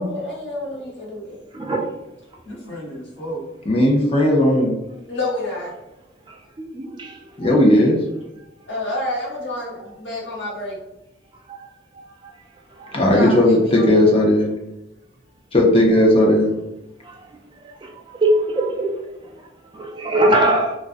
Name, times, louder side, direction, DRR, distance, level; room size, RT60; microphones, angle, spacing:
voice 1, 0.0-1.4 1.7-1.8 2.4-3.4 5.1-5.7 8.7-10.7 13.1-13.9, left 1 dB, 80° left, 1.0 m, -29 dB
voice 2, 1.5-1.9 6.7-7.5 11.5-11.7 12.8-13.0 17.0-17.2 17.6-18.9 19.7-20.8, right 1 dB, 25° right, 0.4 m, -22 dB
voice 3, 3.7-4.7 7.4-8.0 12.9-14.5 15.5-16.5, left 1 dB, 30° left, 0.5 m, -15 dB
2.4 x 2.1 x 2.5 m
head